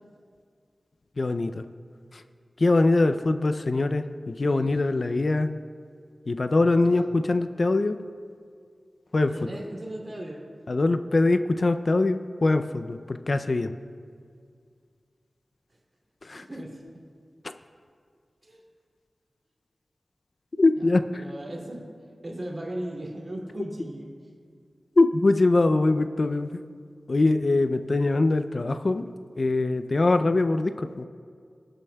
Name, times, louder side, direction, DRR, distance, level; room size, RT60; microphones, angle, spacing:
voice 1, 1.2-1.6 2.6-5.5 6.3-8.0 9.1-9.4 10.7-13.7 16.3-16.4 20.6-21.2 25.0-26.5 27.1-29.1 29.4-31.1, left 2 dB, 55° left, 9 dB, 0.4 m, -23 dB
voice 2, 4.4-5.4 6.9-7.1 9.2-10.4 16.4-16.8 18.4-18.6 20.8-20.9 21.2-21.8 22.2-24.1, right 1 dB, 45° right, -2 dB, 2.4 m, -37 dB
22.0 x 8.8 x 2.3 m, 2.2 s
wide cardioid pair, 55°, 0 cm